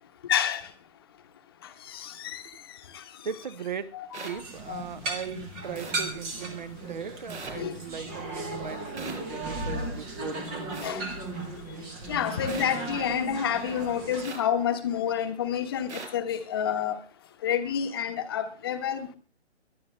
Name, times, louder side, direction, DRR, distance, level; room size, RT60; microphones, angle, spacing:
voice 1, 0.3-0.7 1.9-2.4 2.9-3.0 3.9-4.4 4.7-4.8 5.3-5.4 7.5-7.7 10.8-11.0 12.1-17.0 17.4-19.2, left 9 dB, 20° left, 1.2 m, -29 dB
voice 2, 3.2-4.0 4.2-10.9, right 7 dB, 40° right, 1.0 m, -38 dB
sound 1, 4.1-4.3 5.8-5.9 7.3-7.5 9.0-9.2 10.7-10.9 12.5-12.6 14.2-14.4 15.9-16.1, right 4 dB, 80° right, 5.7 m, -39 dB
sound 2, 4.3-14.3, right 2 dB, 5° right, 0.7 m, -36 dB
22.5 x 11.5 x 3.2 m
hypercardioid pair, 165°, 34 cm